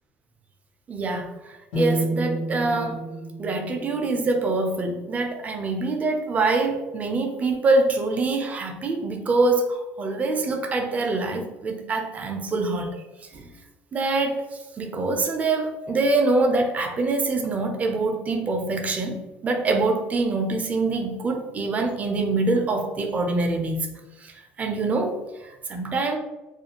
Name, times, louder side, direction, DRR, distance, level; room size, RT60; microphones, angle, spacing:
voice 1, 0.9-3.0 3.4-13.0 13.3-13.5 13.9-14.4 14.8-26.2, right 3 dB, 30° right, 4 dB, 0.5 m, -25 dB
sound 1, 1.7-5.7, right 1 dB, 80° left, 1.0 m, -31 dB
2.5 x 2.2 x 2.9 m, 1.1 s
supercardioid pair, 95°, 5 cm